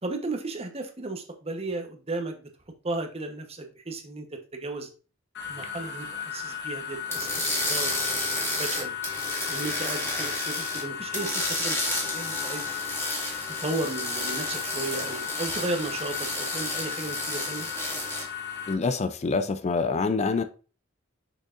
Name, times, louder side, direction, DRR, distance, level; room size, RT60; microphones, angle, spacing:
voice 1, 0.0-2.5 2.8-4.9 5.5-8.9 9.5-12.8 13.6-17.7, right 2 dB, 30° right, 5 dB, 1.0 m, -35 dB
sound 1, 5.3-18.7, left 9 dB, 60° left, 1.1 m, -36 dB
sound 2, 7.1-10.8 11.1-18.2, left 1 dB, 15° left, 2.2 m, -31 dB
voice 2, 18.7-20.4, left 4 dB, 35° left, 10 dB, 0.4 m, -26 dB
6.4 x 6.3 x 2.5 m, 0.35 s
head